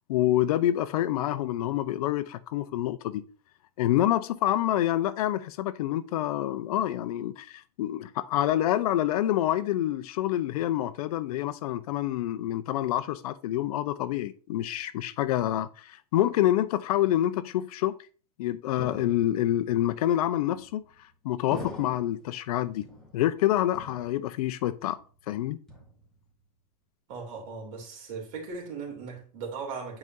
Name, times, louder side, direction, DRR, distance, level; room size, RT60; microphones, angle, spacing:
voice 1, 0.1-3.2 3.8-18.0 18.4-20.8 21.2-22.8 23.1-25.0 25.3-25.6, left 13 dB, 70° left, 0.6 m, -27 dB
sound 1, 18.8-19.6 20.5-21.0 21.5-22.3 22.8-23.4 23.7-24.5 24.8-25.2 25.7-26.3, left 2 dB, ahead, 2.4 m, -44 dB
voice 2, 27.1-30.0, right 5 dB, 55° right, 2.9 m, -38 dB
9.2 x 4.9 x 2.7 m
supercardioid pair, 130°, 20 cm